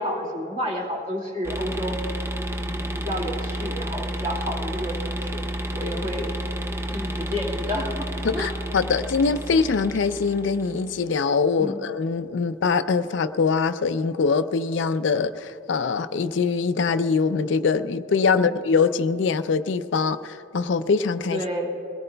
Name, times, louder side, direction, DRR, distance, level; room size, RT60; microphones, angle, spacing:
voice 1, 0.0-2.0 2.6-5.4 5.7-6.3 6.9-8.5 11.6-11.8 18.3-18.5 21.3-21.7, equal, 30° right, -1 dB, 2.2 m, -30 dB
sound 1, 1.4-10.9, equal, 15° right, 0.4 m, -31 dB
voice 2, 8.2-21.4, left 5 dB, 70° left, 11 dB, 0.4 m, -23 dB
22.0 x 17.5 x 2.3 m, 3.0 s
head